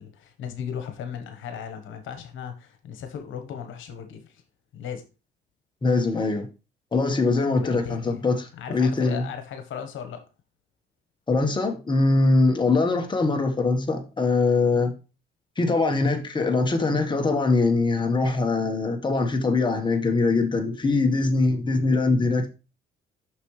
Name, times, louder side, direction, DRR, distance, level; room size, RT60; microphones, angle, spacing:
voice 1, 0.0-4.4 4.7-5.0 7.5-8.2 8.5-10.2, left 7 dB, 80° left, 1.3 m, -36 dB
voice 2, 5.8-6.5 6.9-8.4 8.7-9.2 11.3-14.9 15.6-22.5, left 3 dB, 25° left, 1.4 m, -22 dB
6.5 x 6.1 x 3.2 m
cardioid pair, 90°, 20 cm